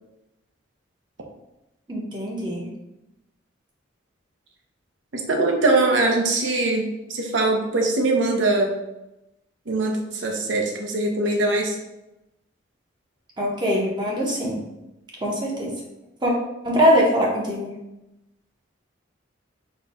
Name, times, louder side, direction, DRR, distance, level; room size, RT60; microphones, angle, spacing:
voice 1, 1.9-2.7 13.4-14.6 15.2-15.7 16.2-16.3 16.6-17.7, equal, 20° right, -2 dB, 0.7 m, -22 dB
voice 2, 5.1-8.7 9.7-11.7, right 2 dB, 70° right, 1 dB, 0.6 m, -22 dB
4.3 x 2.2 x 4.1 m, 0.94 s
head